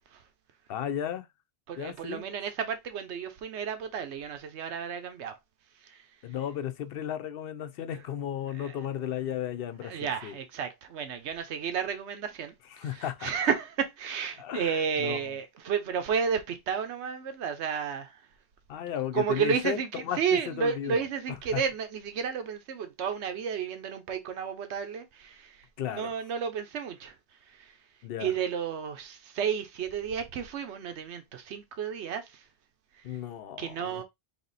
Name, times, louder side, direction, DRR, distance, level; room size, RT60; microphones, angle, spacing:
voice 1, 0.7-1.3 1.8-2.3 6.2-10.3 12.8-13.3 14.4-15.3 18.7-21.0 21.5-21.6 25.8-26.1 28.0-28.3 33.0-34.0, left 10 dB, 65° left, 0.8 m, -34 dB
voice 2, 1.7-5.4 5.8-6.0 8.6-8.8 9.8-12.5 12.8-18.2 19.1-27.1 27.5-27.7 28.2-32.4 33.6-34.0, right 7 dB, 90° right, 1.0 m, -32 dB
3.4 x 2.9 x 4.0 m
omnidirectional pair, 1.1 m